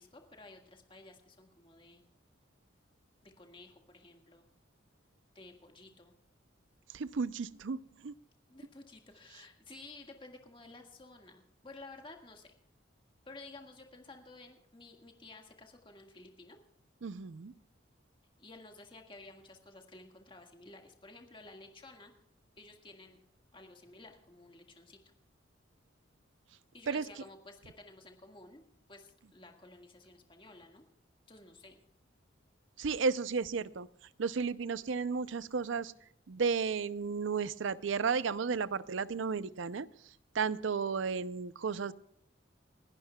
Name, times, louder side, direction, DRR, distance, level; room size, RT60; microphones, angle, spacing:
voice 1, 0.0-2.0 3.2-4.4 5.3-6.1 8.5-12.5 13.2-16.6 18.4-22.1 22.6-23.2 23.5-25.0 26.7-28.6 28.9-30.8 31.3-31.8, left 2 dB, 25° left, 3 dB, 1.7 m, -53 dB
voice 2, 6.9-8.1 17.0-17.5 26.9-27.0 32.8-33.9 34.2-35.9 36.3-39.9 40.3-41.9, right 5 dB, 75° right, 17 dB, 0.5 m, -33 dB
30.0 x 11.5 x 2.3 m, 0.71 s
head